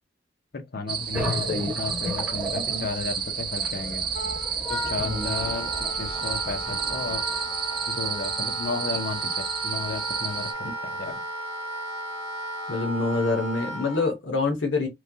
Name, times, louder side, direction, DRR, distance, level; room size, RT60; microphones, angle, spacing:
voice 1, 0.5-4.1 4.7-7.2 7.9-10.5 10.8-11.2, left 4 dB, 55° left, 0.7 m, -33 dB
sound 1, 0.9-10.5, right 7 dB, 25° right, 0.4 m, -31 dB
voice 2, 1.1-1.8 2.5-2.8 4.9-5.3 8.4-8.5 12.7-14.9, left 3 dB, 80° left, 0.9 m, -27 dB
sound 2, 1.1-8.3, equal, 10° right, 1.2 m, -36 dB
Wind instrument woodwind instrument, 4.1-14.1, right 1 dB, 40° left, 1.8 m, -34 dB
3.1 x 2.2 x 2.7 m
head